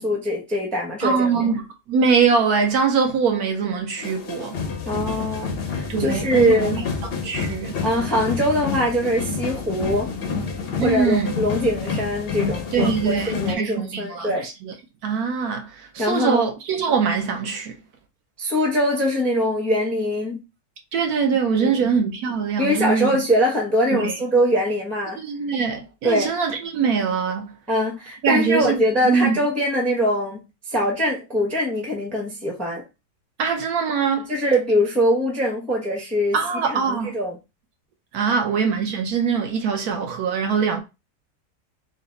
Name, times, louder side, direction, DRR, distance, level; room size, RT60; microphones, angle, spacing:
voice 1, 0.0-1.3 4.8-6.9 7.8-10.1 10.8-14.5 16.0-16.5 18.4-20.4 21.6-21.8 22.6-25.2 26.0-26.3 27.7-30.4 30.7-32.8 34.3-36.4 36.6-37.4 38.3-38.5, equal, ahead, 0.7 m, -22 dB
voice 2, 1.0-1.6 1.9-4.6 5.9-7.8 10.8-11.3 12.7-14.3 15.0-15.7 15.9-17.7 20.9-23.1 23.9-24.1 25.2-27.5 28.2-29.3 33.4-34.3 36.3-37.1 38.1-40.8, right 5 dB, 70° right, 1.2 m, -22 dB
sound 1, 4.0-13.6, left 5 dB, 60° left, 0.6 m, -28 dB
4.0 x 2.2 x 3.9 m
omnidirectional pair, 1.8 m